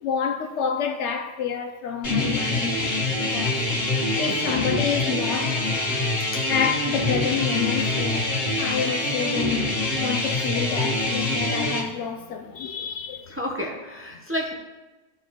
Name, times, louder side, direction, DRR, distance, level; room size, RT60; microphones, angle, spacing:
voice 1, 0.0-2.8 3.2-3.6 4.2-5.8 6.5-8.3 8.6-9.7 10.0-13.3, left 7 dB, 70° left, 0.9 m, -28 dB
sound 1, 2.0-11.8, left 2 dB, 90° left, 1.8 m, -25 dB
Wind instrument woodwind instrument, 3.9-10.1, left 3 dB, 45° left, 1.5 m, -41 dB
voice 2, 4.2-4.9 6.3-6.5 13.3-14.5, equal, 15° right, 0.6 m, -32 dB
14.0 x 4.8 x 2.9 m
omnidirectional pair, 1.3 m